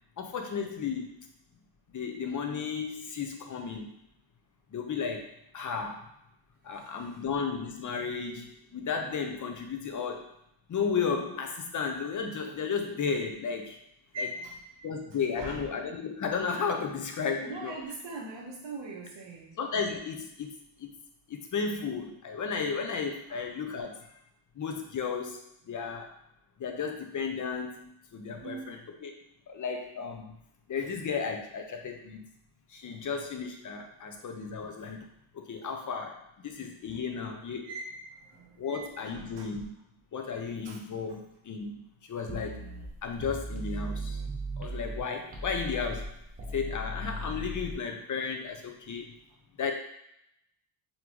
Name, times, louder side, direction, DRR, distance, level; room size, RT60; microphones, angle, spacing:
voice 1, 0.2-1.2 1.9-3.9 4.7-6.1 6.6-10.3 10.7-13.8 14.2-14.3 14.8-17.7 19.6-20.9 21.3-24.2 24.6-26.1 26.6-29.1 29.5-30.4 30.7-32.3 32.7-35.1 35.3-37.7 38.6-39.7 40.1-42.7 43.0-44.2 44.6-46.1 46.5-49.2 49.6-49.7, left 5 dB, 40° left, 4 dB, 0.5 m, -34 dB
voice 2, 6.7-7.2 14.1-14.8 15.4-15.7 17.4-19.6 23.3-23.5 28.4-28.8 37.6-39.6 40.6-41.2, right 2 dB, 60° right, -2 dB, 1.1 m, -42 dB
sound 1, 42.3-45.0 45.3-47.7, right 1 dB, 20° right, 0.5 m, -37 dB
3.8 x 3.5 x 3.0 m, 0.78 s
wide cardioid pair, 165°, 49 cm